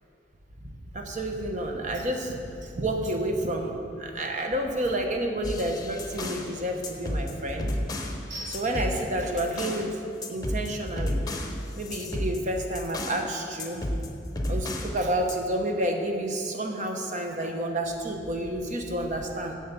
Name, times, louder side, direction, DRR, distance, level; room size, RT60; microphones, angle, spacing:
voice 1, 0.6-7.8 8.3-10.0 10.3-11.2 11.8-13.9 14.5-19.6, right 1 dB, 45° right, 3 dB, 1.0 m, -30 dB
sound 1, 5.4-6.5 6.8-8.2 8.5-9.9 10.2-13.3 13.6-15.0 15.3-15.4, left 1 dB, 20° left, 0.9 m, -32 dB
7.9 x 7.6 x 6.9 m, 2.6 s
head